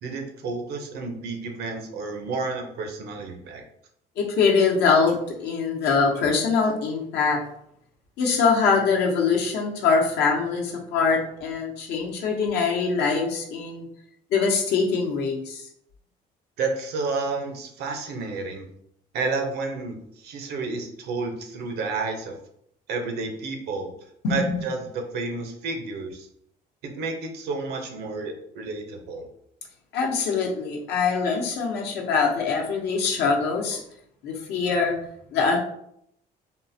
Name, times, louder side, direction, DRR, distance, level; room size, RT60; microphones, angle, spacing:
voice 1, 0.0-3.6 16.6-18.7 19.1-22.4 22.9-23.9 24.3-26.3 26.8-29.3, right 3 dB, 75° right, 4 dB, 0.7 m, -31 dB
voice 2, 4.2-7.4 8.2-13.9 14.3-15.6 24.2-24.4 29.9-33.8 34.2-35.0 35.3-35.6, left 5 dB, 75° left, 0 dB, 0.8 m, -23 dB
3.7 x 2.1 x 2.7 m, 0.72 s
cardioid pair, 110°, 17 cm